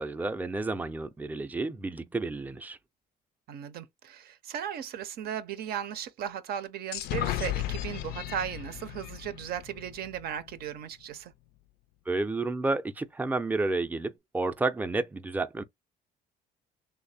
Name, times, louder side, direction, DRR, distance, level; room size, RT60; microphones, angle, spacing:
voice 1, 0.0-2.8 12.1-15.6, right 3 dB, 10° right, 0.4 m, -31 dB
voice 2, 3.5-11.3, right 9 dB, 65° right, 0.6 m, -36 dB
sound 1, 6.9-10.6, left 13 dB, 75° left, 0.4 m, -35 dB
3.2 x 2.1 x 4.1 m
cardioid pair, 110°, 17 cm